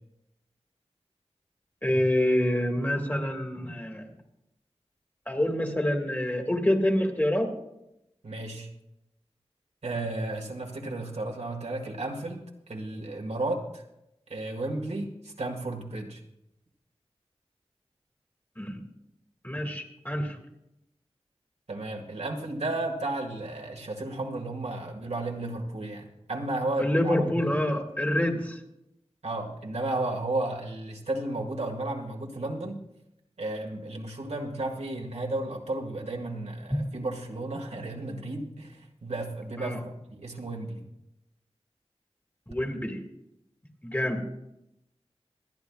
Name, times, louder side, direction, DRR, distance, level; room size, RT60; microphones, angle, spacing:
voice 1, 1.8-4.1 5.3-7.5 18.6-18.8 19.4-20.4 26.8-28.6 39.6-39.8 42.5-43.0 43.8-44.2, left 1 dB, 15° left, 3 dB, 1.8 m, -27 dB
voice 2, 8.2-8.7 9.8-13.8 14.3-16.2 21.7-27.5 29.2-32.8 33.4-40.8, right 2 dB, 75° right, 0 dB, 1.8 m, -33 dB
26.0 x 9.8 x 2.4 m, 0.85 s
wide cardioid pair, 65°, 11 cm